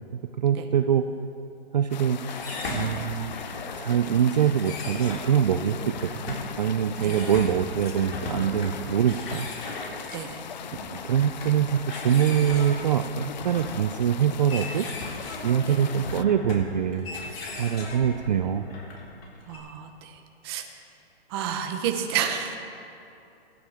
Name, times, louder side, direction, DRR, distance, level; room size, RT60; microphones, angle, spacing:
voice 1, 0.4-1.0 1.7-2.2 2.7-3.5 3.8-9.5 10.9-14.9 15.4-17.2 17.5-18.7, right 8 dB, 40° right, 8 dB, 0.5 m, -24 dB
sound 1, 1.9-16.2, left 9 dB, 45° left, 0.4 m, -40 dB
sound 2, 2.2-19.6, left 2 dB, 65° left, 4.3 m, -38 dB
voice 2, 10.1-10.4 15.6-15.8 19.5-20.7 21.3-22.6, right 8 dB, 25° right, 5 dB, 1.0 m, -30 dB
23.0 x 12.0 x 3.6 m, 2.7 s
hypercardioid pair, 160°, 32 cm